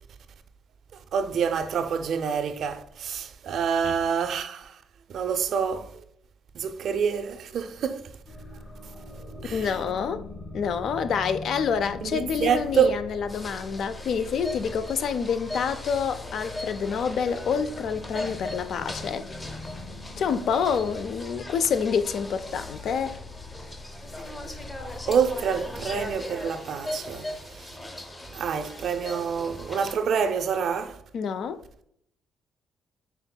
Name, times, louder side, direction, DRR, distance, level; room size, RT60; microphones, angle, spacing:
voice 1, 1.1-4.7 5.1-5.9 6.5-8.1 9.4-9.7 12.0-13.0 25.1-27.3 27.6-27.7 28.3-31.0, right 7 dB, 65° right, 0.4 m, -27 dB
sound 1, 8.3-26.2, left 2 dB, 45° left, 1.6 m, -42 dB
voice 2, 9.5-10.2 10.5-19.3 20.2-23.2 31.1-31.6, left 6 dB, 65° left, 0.3 m, -27 dB
sound 2, 13.3-29.9, left 1 dB, 25° left, 0.7 m, -39 dB
5.7 x 3.6 x 2.2 m
cardioid pair, 90°, 0 cm